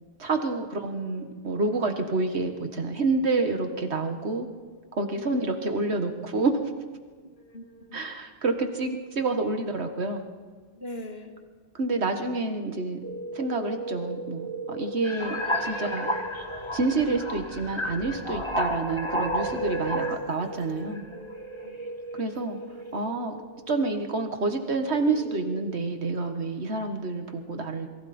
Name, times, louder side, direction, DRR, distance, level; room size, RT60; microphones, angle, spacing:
voice 1, 0.2-4.5 4.9-6.6 7.9-10.2 11.7-13.0 13.3-16.1 16.7-21.0 22.1-22.6 22.9-23.4 23.7-27.9, right 3 dB, 70° right, 6 dB, 1.9 m, -28 dB
voice 2, 5.1-5.6 7.2-8.1 10.7-11.3 18.5-18.6 20.8-21.2 21.6-21.9, left 1 dB, 60° left, 3 dB, 2.3 m, -43 dB
sound 1, 13.0-25.6, right 2 dB, 85° right, 2.1 m, -38 dB
sound 2, 15.0-20.3 20.9-21.3, left 1 dB, 25° left, 1.8 m, -31 dB
28.0 x 22.5 x 4.4 m, 1.5 s
omnidirectional pair, 1.2 m